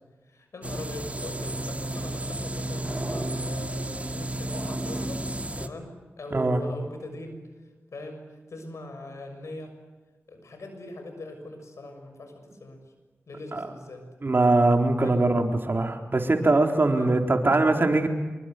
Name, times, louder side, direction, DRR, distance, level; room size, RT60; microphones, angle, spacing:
voice 1, 0.3-5.2 5.6-7.4 7.9-9.7 10.3-12.8 13.3-14.0 15.0-15.2 16.8-17.1, left 2 dB, 85° left, 6 dB, 6.7 m, -41 dB
sound 1, 0.6-5.7, right 1 dB, 30° right, 2.2 m, -32 dB
voice 2, 6.3-6.6 13.5-13.6 14.2-18.1, right 2 dB, 45° right, 4 dB, 3.9 m, -22 dB
26.0 x 23.5 x 7.9 m, 1.3 s
cardioid pair, 55°, 5 cm